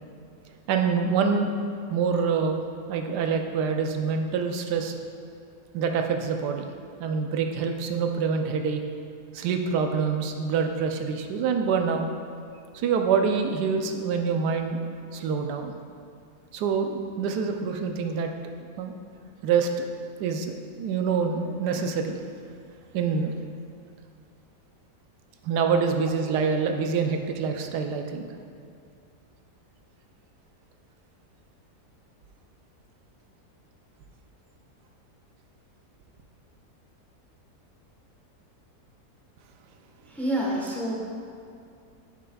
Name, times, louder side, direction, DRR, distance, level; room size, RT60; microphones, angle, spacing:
voice 1, 0.7-1.5 1.9-2.6 2.9-4.9 5.7-6.7 7.0-8.8 9.3-12.1 12.7-14.8 15.1-15.7 16.5-18.3 18.8-18.9 19.4-19.8 20.2-22.2 22.9-23.3 25.4-28.3, right 5 dB, 85° right, 4 dB, 1.2 m, -26 dB
voice 2, 40.1-40.9, right 1 dB, ahead, -4 dB, 0.8 m, -27 dB
9.6 x 6.7 x 2.3 m, 2.4 s
omnidirectional pair, 1.7 m